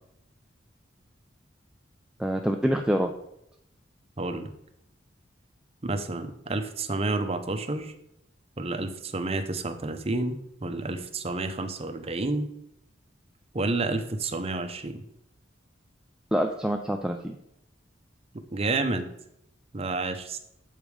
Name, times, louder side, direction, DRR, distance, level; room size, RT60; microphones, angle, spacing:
voice 1, 2.2-3.1 16.3-17.4, equal, 5° right, 3 dB, 0.4 m, -26 dB
voice 2, 4.2-4.5 5.8-7.9 8.6-12.5 13.5-15.0 18.5-19.1 19.7-20.4, right 2 dB, 30° right, 7 dB, 0.7 m, -30 dB
7.5 x 5.2 x 4.8 m, 0.78 s
head